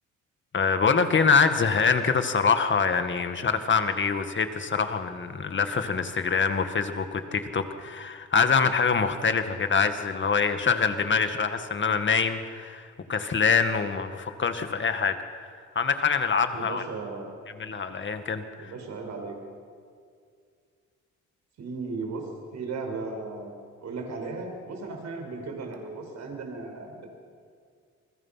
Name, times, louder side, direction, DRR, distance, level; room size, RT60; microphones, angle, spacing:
voice 1, 0.5-15.1 15.4-16.8 17.6-18.7, left 5 dB, 40° left, 8 dB, 2.0 m, -25 dB
voice 2, 16.5-17.3 18.6-19.3 21.6-23.5 23.8-27.1, right 3 dB, 65° right, 3 dB, 5.3 m, -36 dB
28.5 x 21.5 x 5.8 m, 2.2 s
cardioid pair, 90°, 30 cm